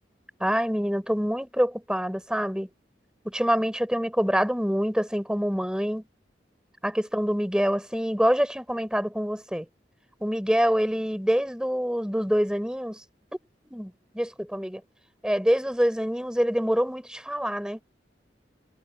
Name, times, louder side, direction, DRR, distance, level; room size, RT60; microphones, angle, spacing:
voice 1, 0.4-2.7 3.2-6.0 6.8-9.7 10.2-13.0 13.6-14.8 15.2-17.8, equal, 5° right, 6.5 m, -26 dB
head